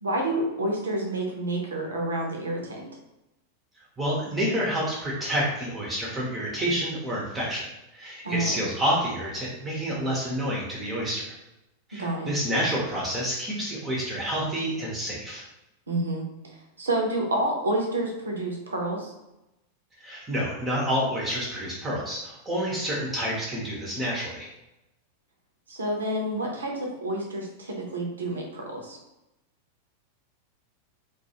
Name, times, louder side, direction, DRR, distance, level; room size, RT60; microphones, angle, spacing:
voice 1, 0.0-2.9 8.2-8.6 12.0-12.3 15.9-16.2 16.8-19.1 25.7-29.0, right 1 dB, 70° right, 0 dB, 0.6 m, -29 dB
voice 2, 4.0-7.6 7.9-11.3 11.9-15.4 20.0-24.5, equal, 15° right, -5 dB, 0.7 m, -28 dB
2.3 x 2.2 x 2.8 m, 0.94 s
figure-of-eight pair, 90°, 0 cm